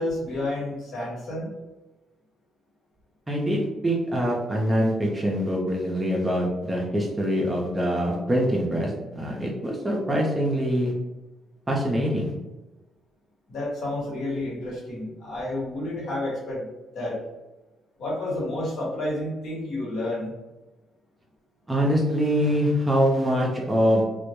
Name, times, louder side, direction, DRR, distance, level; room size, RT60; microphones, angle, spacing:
voice 1, 0.0-1.5 13.5-16.7 16.9-17.2 18.0-20.3, left 1 dB, 75° left, -5 dB, 1.1 m, -30 dB
voice 2, 3.3-10.9 11.7-12.3 21.7-24.0, equal, 20° right, -3 dB, 0.5 m, -24 dB
2.1 x 2.1 x 2.9 m, 1.1 s
cardioid pair, 90°, 0 cm